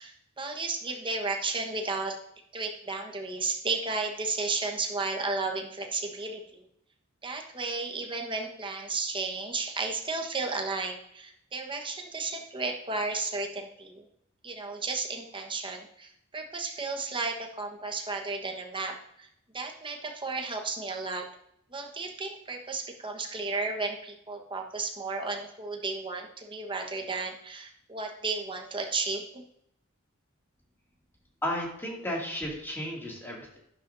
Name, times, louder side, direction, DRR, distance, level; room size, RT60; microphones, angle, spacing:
voice 1, 0.0-2.1 2.5-6.6 7.2-14.1 14.4-19.3 19.5-21.2 21.7-29.4, right 3 dB, 25° right, 2 dB, 1.3 m, -33 dB
voice 2, 31.4-33.6, left 1 dB, 10° left, -3 dB, 2.4 m, -33 dB
11.5 x 11.0 x 2.7 m, 0.73 s
head